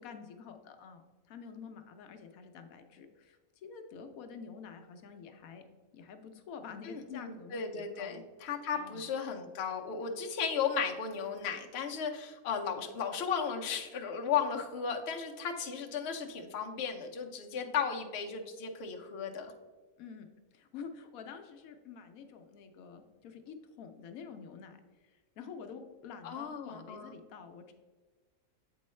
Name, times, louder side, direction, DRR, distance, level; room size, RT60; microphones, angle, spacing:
voice 1, 0.0-5.6 5.9-8.3 8.7-9.1 17.5-17.8 20.0-20.3 20.5-27.7, left 6 dB, 80° left, 6 dB, 1.1 m, -48 dB
voice 2, 6.8-19.5 26.2-27.2, left 6 dB, 55° left, 2 dB, 0.9 m, -35 dB
7.7 x 4.5 x 3.1 m, 1.4 s
omnidirectional pair, 1.5 m